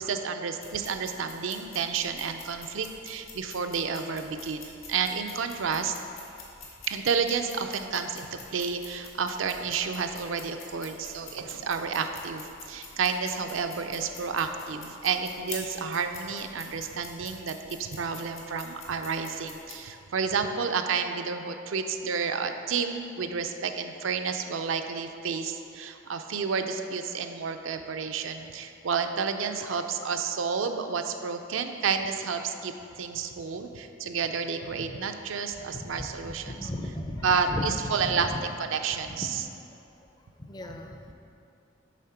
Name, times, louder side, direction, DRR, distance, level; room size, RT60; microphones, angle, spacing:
voice 1, 0.0-5.9 6.9-36.7 37.2-38.3 38.6-39.4, right 5 dB, 75° right, 7 dB, 0.5 m, -30 dB
sound 1, 0.6-19.7, left 4 dB, 90° left, 1.5 m, -47 dB
voice 2, 35.7-38.4 39.0-39.3 39.7-39.8 40.4-41.1, left 1 dB, 20° left, 4 dB, 0.5 m, -36 dB
8.3 x 3.6 x 5.8 m, 2.7 s
head